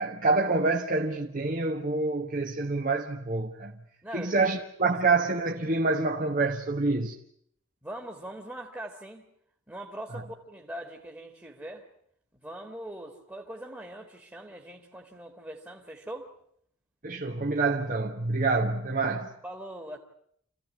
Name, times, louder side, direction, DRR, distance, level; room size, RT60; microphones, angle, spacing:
voice 1, 0.0-3.7 4.1-7.1 10.1-10.2 17.0-19.3, right 3 dB, 45° right, 1.3 m, -27 dB
voice 2, 4.0-4.5 4.8-4.9 7.8-9.3 9.7-11.9 12.4-16.3 19.4-20.0, right 1 dB, 10° right, 1.9 m, -41 dB
27.5 x 15.5 x 9.5 m
head